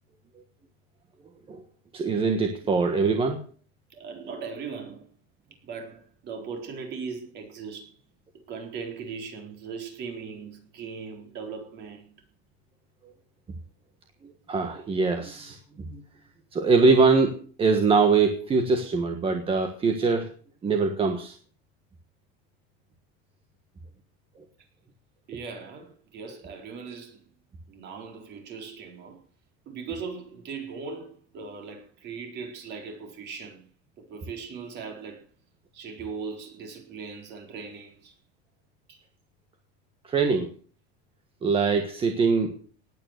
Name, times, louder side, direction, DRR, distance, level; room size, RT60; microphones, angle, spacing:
voice 1, 1.9-3.4 14.2-16.0 16.5-20.3 20.6-21.4 40.0-40.5 41.4-42.5, right 4 dB, 20° right, 1.5 m, -23 dB
voice 2, 3.9-5.1 5.6-7.9 8.5-12.1 25.3-27.2 27.7-29.2 29.7-33.7 34.0-35.2 35.7-38.1 38.9-39.0, right 5 dB, 35° right, 4.2 m, -39 dB
18.5 x 9.3 x 6.6 m
cardioid pair, 170°, 30 cm